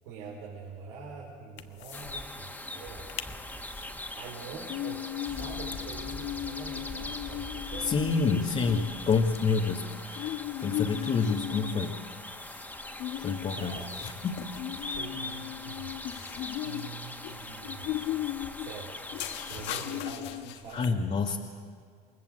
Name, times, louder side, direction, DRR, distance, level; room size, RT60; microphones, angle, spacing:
voice 1, 0.0-3.1 3.5-3.6 4.1-7.9 12.7-13.2 13.5-14.0 15.0-16.2 16.6-18.0 18.6-21.0, right 5 dB, 90° right, -4 dB, 4.7 m, -45 dB
sound 1, 1.6-2.2 2.5-2.6 2.9-3.3 3.7-20.9, left 14 dB, 70° left, 1.4 m, -37 dB
sound 2, 1.9-20.0, left 1 dB, 10° left, 2.2 m, -41 dB
voice 2, 7.8-12.0 13.2-13.8 14.2-14.5 20.7-21.4, left 4 dB, 35° left, 0 dB, 1.9 m, -28 dB
28.0 x 20.0 x 7.8 m, 2.1 s
supercardioid pair, 105°, 19 cm